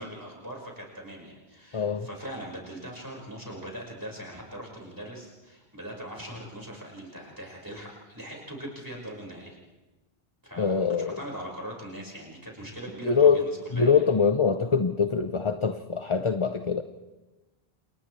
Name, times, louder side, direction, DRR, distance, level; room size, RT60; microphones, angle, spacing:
voice 1, 0.0-9.6 10.4-14.0, right 1 dB, 20° right, -3 dB, 5.3 m, -41 dB
voice 2, 1.7-2.1 10.6-11.2 13.0-13.4 13.7-16.8, left 6 dB, 30° left, 8 dB, 0.7 m, -23 dB
29.0 x 28.5 x 3.3 m, 1.1 s
omnidirectional pair, 1.1 m